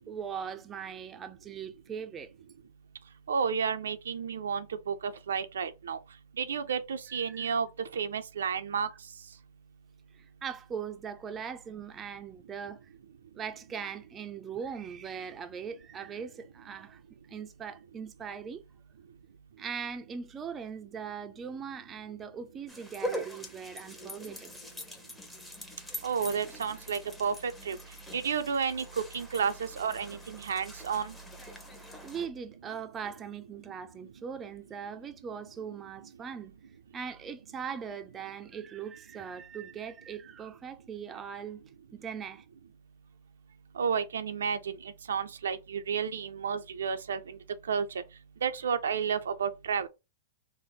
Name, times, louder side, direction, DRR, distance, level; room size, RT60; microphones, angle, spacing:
voice 1, 0.1-2.3 7.1-7.5 10.2-12.8 13.3-17.0 17.3-18.6 19.6-24.5 32.0-36.5 36.9-41.6 41.9-42.4, right 7 dB, 20° right, 0.4 m, -40 dB
voice 2, 3.3-6.0 6.4-7.7 7.9-8.9 26.0-27.8 28.1-28.8 29.1-31.1 43.8-44.8 45.1-47.4 47.7-47.9 48.4-49.9, right 6 dB, 85° right, 0.4 m, -31 dB
sound 1, 22.7-32.3, equal, 5° left, 0.8 m, -43 dB
3.5 x 2.0 x 3.8 m
hypercardioid pair, 125°, 0 cm